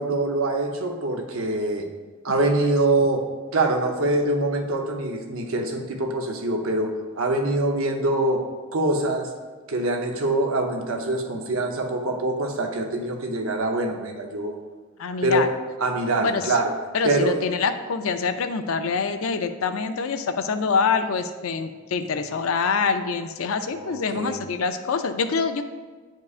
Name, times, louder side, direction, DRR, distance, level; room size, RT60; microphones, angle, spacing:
voice 1, 0.0-1.8 2.2-3.3 3.5-8.4 8.7-9.3 9.7-14.6 15.2-15.5 15.8-16.7 17.0-17.4 23.7-24.4, right 2 dB, 75° right, 3 dB, 0.8 m, -24 dB
voice 2, 15.0-15.5 16.2-16.6 16.9-25.6, left 5 dB, 75° left, 9 dB, 0.4 m, -25 dB
9.5 x 4.6 x 2.5 m, 1.4 s
head